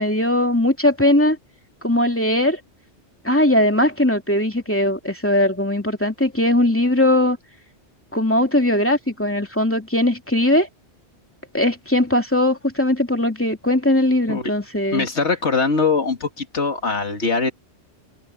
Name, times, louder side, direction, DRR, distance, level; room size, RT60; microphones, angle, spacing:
voice 1, 0.0-1.4 1.8-2.6 3.2-7.4 8.1-10.7 11.5-15.1, left 1 dB, 10° left, 2.6 m, -19 dB
voice 2, 14.9-17.5, left 4 dB, 80° left, 2.6 m, -22 dB
omnidirectional pair, 1.1 m